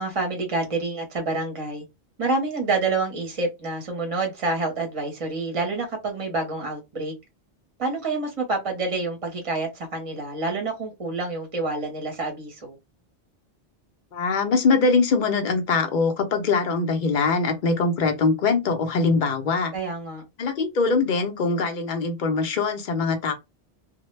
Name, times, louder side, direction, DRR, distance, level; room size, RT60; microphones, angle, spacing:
voice 1, 0.0-1.8 2.2-7.1 7.8-12.8 19.7-20.2, right 3 dB, 35° right, 0.7 m, -28 dB
voice 2, 14.1-19.7 20.4-23.3, left 4 dB, 55° left, 0.7 m, -22 dB
2.1 x 2.0 x 3.1 m
omnidirectional pair, 1.0 m